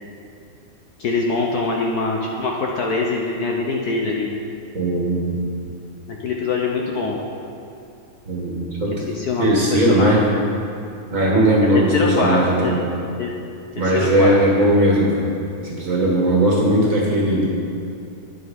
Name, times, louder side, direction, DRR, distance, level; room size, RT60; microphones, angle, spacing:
voice 1, 1.0-4.3 5.7-5.8 6.1-7.2 9.1-10.3 11.7-12.7 13.2-13.3 13.8-14.4, left 3 dB, 65° left, -1 dB, 1.0 m, -23 dB
voice 2, 4.7-5.5 8.3-9.1 9.4-10.2 11.1-12.9 13.7-15.2 15.6-17.5, right 1 dB, 40° right, -3 dB, 1.8 m, -18 dB
9.7 x 7.8 x 5.2 m, 2.5 s
omnidirectional pair, 2.4 m